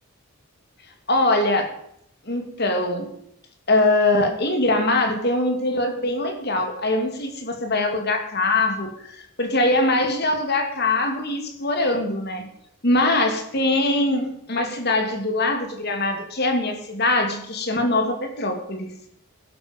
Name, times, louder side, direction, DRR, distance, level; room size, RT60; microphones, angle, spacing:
voice 1, 1.1-1.7 2.2-3.1 3.7-12.5 12.8-18.9, left 2 dB, 50° left, 5 dB, 2.8 m, -22 dB
16.5 x 12.5 x 5.4 m, 0.74 s
head